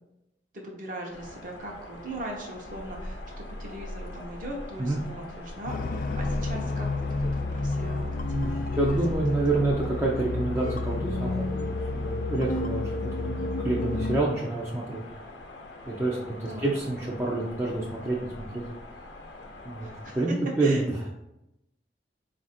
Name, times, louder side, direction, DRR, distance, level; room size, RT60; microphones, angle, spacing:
voice 1, 0.5-9.2 13.3-13.6 16.5-16.7 19.8-20.3 20.6-20.8, right 1 dB, 50° right, -1 dB, 0.8 m, -40 dB
sound 1, 1.1-20.3, left 1 dB, 85° left, 0.7 m, -42 dB
sound 2, 5.7-14.2, left 2 dB, 50° left, 0.3 m, -30 dB
voice 2, 8.3-15.0 15.9-18.6 19.6-19.9 20.2-21.1, right 2 dB, 15° right, -5 dB, 0.5 m, -28 dB
4.1 x 2.5 x 4.2 m, 0.89 s
head